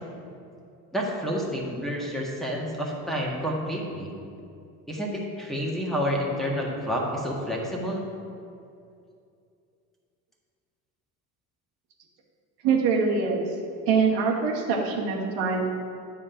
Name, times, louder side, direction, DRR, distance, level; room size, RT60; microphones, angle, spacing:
voice 1, 0.9-4.1 4.9-8.1, equal, ahead, -3 dB, 1.7 m, -29 dB
voice 2, 12.6-13.4 13.9-15.7, right 5 dB, 65° right, -2 dB, 1.6 m, -24 dB
9.7 x 3.7 x 5.8 m, 2.5 s
hypercardioid pair, 65°, 46 cm